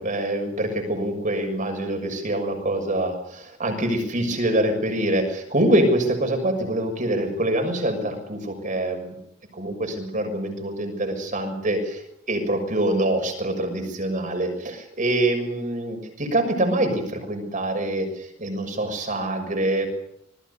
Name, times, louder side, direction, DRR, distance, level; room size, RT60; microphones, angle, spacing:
voice 1, 0.0-9.1 9.5-12.0 12.3-19.9, right 1 dB, 40° right, 5 dB, 6.5 m, -25 dB
26.5 x 20.0 x 7.0 m, 0.74 s
head